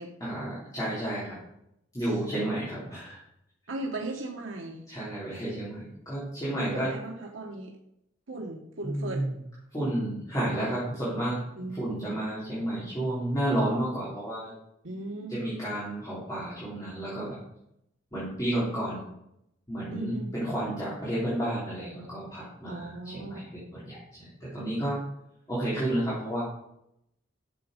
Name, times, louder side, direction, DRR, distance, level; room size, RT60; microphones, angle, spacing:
voice 1, 0.2-1.4 1.9-3.2 4.9-6.9 8.8-9.3 9.7-11.4 11.8-14.5 15.3-17.4 18.1-19.0 19.7-23.4 23.7-25.0 25.5-26.4, right 1 dB, 20° left, -9 dB, 3.6 m, -31 dB
voice 2, 3.7-4.8 6.5-7.8 8.3-9.3 11.6-11.8 14.8-15.4 19.9-20.3 22.7-23.4, right 2 dB, 90° right, 0 dB, 1.2 m, -37 dB
10.5 x 7.3 x 5.2 m, 0.80 s
head